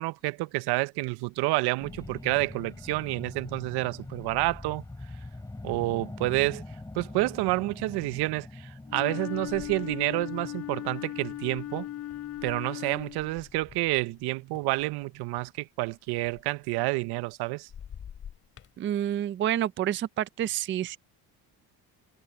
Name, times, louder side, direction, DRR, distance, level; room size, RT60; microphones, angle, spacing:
voice 1, 0.0-4.8 5.6-6.6 6.9-11.9 12.4-17.7, right 21 dB, 85° right, 0.7 m, -29 dB
sound 1, 1.8-14.4 14.9-15.1, left 2 dB, 10° left, 5.0 m, -44 dB
Wind instrument woodwind instrument, 8.9-13.4, left 13 dB, 55° left, 3.1 m, -37 dB
sound 2, 9.0-14.2 14.5-17.4 17.6-18.8, left 8 dB, 35° left, 2.7 m, -50 dB
voice 2, 18.8-21.0, right 11 dB, 30° right, 0.4 m, -28 dB
cardioid pair, 165°, 38 cm